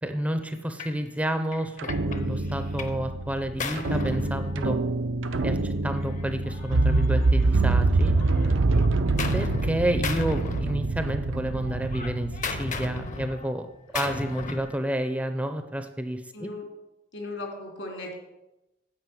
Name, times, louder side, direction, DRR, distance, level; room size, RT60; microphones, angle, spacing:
voice 1, 0.0-4.8 5.4-8.2 9.3-13.7 13.9-16.5, right 1 dB, 5° right, 7 dB, 0.5 m, -30 dB
Gunshot gunfire, 0.8-1.0 1.5-3.0 3.3-5.0 6.0-7.8 8.2-9.7 10.0-11.3 11.6-14.8, left 3 dB, 40° left, 0.8 m, -36 dB
sound 1, 1.8-13.1, right 2 dB, 80° right, 0.6 m, -25 dB
voice 2, 16.3-16.7 17.1-18.1, left 2 dB, 75° left, 0 dB, 3.0 m, -38 dB
9.1 x 5.1 x 7.7 m, 0.94 s
head